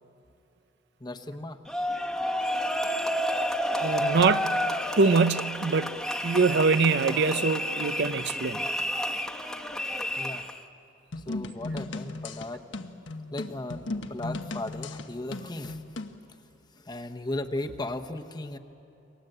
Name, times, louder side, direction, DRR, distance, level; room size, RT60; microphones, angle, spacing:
voice 1, 1.0-1.6 10.2-10.5 11.2-12.9 13.3-15.8 16.7-18.6, left 2 dB, 25° left, 1.0 m, -36 dB
sound 1, 1.7-10.6, equal, ahead, 1.1 m, -30 dB
voice 2, 3.8-4.6 5.0-8.6, right 4 dB, 65° right, 0.6 m, -24 dB
sound 2, 11.1-16.2, left 2 dB, 85° left, 1.2 m, -36 dB
29.0 x 22.5 x 7.9 m
head